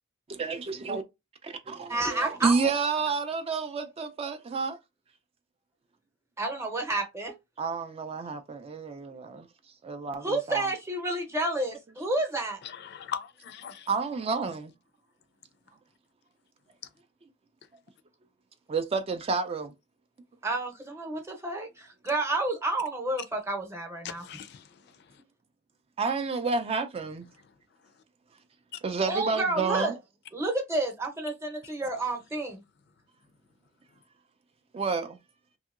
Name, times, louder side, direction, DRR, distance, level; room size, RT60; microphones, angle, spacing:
voice 1, 0.3-1.0 1.4-4.8 7.6-9.5 9.8-10.7 13.9-14.7 18.7-19.7 26.0-27.3 28.8-29.9 34.7-35.2, right 4 dB, 30° right, 0.3 m, -30 dB
voice 2, 1.9-2.6 6.4-7.3 10.2-12.6 20.4-24.2 29.1-30.0 30.3-32.6, right 2 dB, 15° right, 0.7 m, -30 dB
voice 3, 12.6-13.9 24.0-25.2 28.7-28.8 31.6-31.8, left 8 dB, 60° left, 0.4 m, -40 dB
2.8 x 2.7 x 2.4 m
head